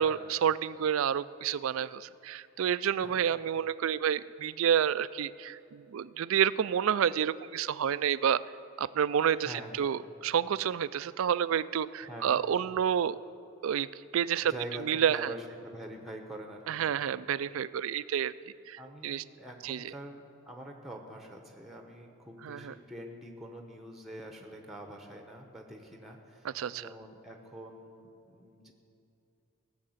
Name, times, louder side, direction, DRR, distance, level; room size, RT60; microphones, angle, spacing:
voice 1, 0.0-8.4 8.8-13.2 13.6-13.9 14.1-14.5 14.8-15.3 16.7-18.3 18.7-19.2 19.6-19.9 22.4-22.7 26.4-26.9, right 8 dB, 75° right, 17 dB, 0.3 m, -29 dB
voice 2, 9.4-9.9 12.0-12.4 14.4-16.9 18.8-28.7, right 1 dB, ahead, 3 dB, 0.9 m, -45 dB
17.0 x 6.6 x 7.9 m, 2.7 s
head